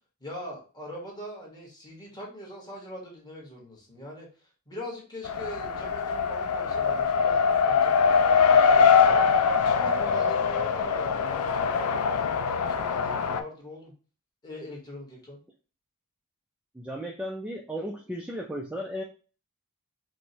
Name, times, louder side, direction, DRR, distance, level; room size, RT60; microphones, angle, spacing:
voice 1, 0.2-4.3 4.7-13.9 14.4-15.4, equal, 20° left, -2 dB, 1.2 m, -42 dB
Race car auto racing, 5.2-13.4, left 6 dB, 70° left, 0.4 m, -23 dB
voice 2, 16.7-19.0, equal, 5° right, 0 dB, 0.3 m, -35 dB
4.5 x 2.1 x 2.7 m, 0.37 s
head